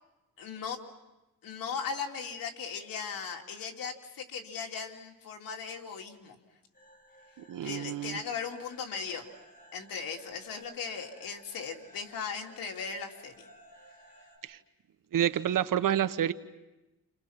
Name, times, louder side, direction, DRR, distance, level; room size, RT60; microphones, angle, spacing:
voice 1, 0.4-0.8 1.4-6.4 7.6-9.3 9.7-13.5, left 6 dB, 75° left, 2 dB, 3.2 m, -38 dB
sound 1, 6.7-14.4, equal, 25° left, 7.0 m, -57 dB
voice 2, 7.5-8.2 14.5-14.6 15.1-16.3, right 10 dB, 65° right, 12 dB, 1.2 m, -28 dB
29.5 x 29.5 x 5.9 m, 1.0 s
cardioid pair, 105°, 35 cm